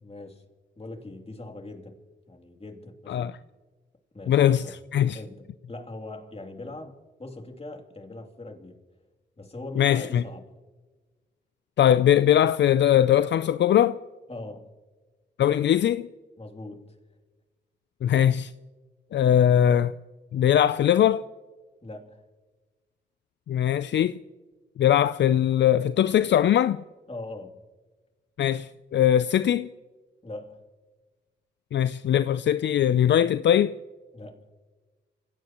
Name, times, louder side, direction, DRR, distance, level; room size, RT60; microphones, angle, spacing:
voice 1, 0.0-0.4 0.8-3.4 4.1-4.7 5.1-8.8 9.4-10.4 14.3-14.7 16.4-17.0 21.8-22.2 27.1-27.6 30.2-30.6 34.1-34.4, left 2 dB, 30° left, 2.9 m, -41 dB
voice 2, 4.3-4.7 4.9-5.2 9.8-10.2 11.8-14.0 15.4-16.1 18.0-18.5 19.1-19.9 20.3-21.3 23.5-24.2 24.8-26.8 28.4-29.7 31.7-33.8, left 10 dB, 70° left, 0.4 m, -21 dB
26.5 x 17.0 x 3.0 m
supercardioid pair, 50°, 19 cm